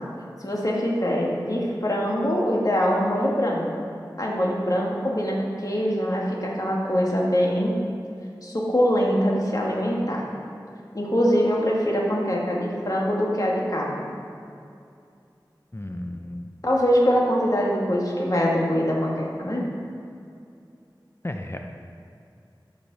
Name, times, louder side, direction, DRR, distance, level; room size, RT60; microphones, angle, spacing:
voice 1, 0.4-3.6 4.2-7.8 8.4-10.3 10.9-14.1 16.6-19.6, equal, 45° left, -3 dB, 1.8 m, -23 dB
voice 2, 15.7-16.5 21.2-21.6, left 1 dB, 30° left, 3 dB, 0.6 m, -33 dB
13.5 x 5.3 x 4.0 m, 2.5 s
wide cardioid pair, 45°, 8 cm